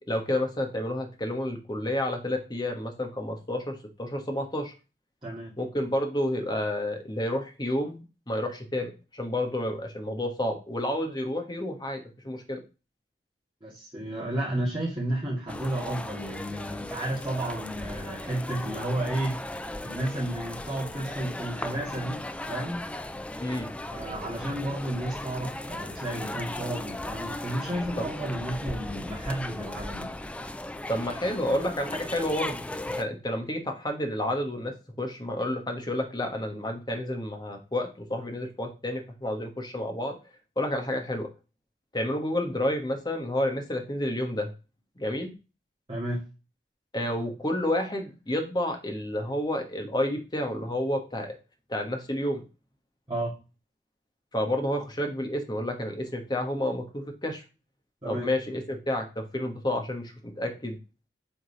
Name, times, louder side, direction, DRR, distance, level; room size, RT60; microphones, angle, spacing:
voice 1, 0.1-4.7 5.6-12.6 23.4-23.7 28.0-28.1 30.9-40.1 40.6-41.3 41.9-44.5 45.0-45.3 46.9-51.3 51.7-52.4 54.3-57.4 58.0-60.8, left 1 dB, 25° left, 4 dB, 1.3 m, -30 dB
voice 2, 5.2-5.5 13.6-19.4 19.8-22.8 23.9-30.2 45.9-46.2 53.1-53.4 58.0-58.3, right 1 dB, 30° right, -7 dB, 2.1 m, -32 dB
sound 1, 15.5-33.0, left 1 dB, 5° left, 0.3 m, -37 dB
8.0 x 3.9 x 4.0 m, 0.31 s
head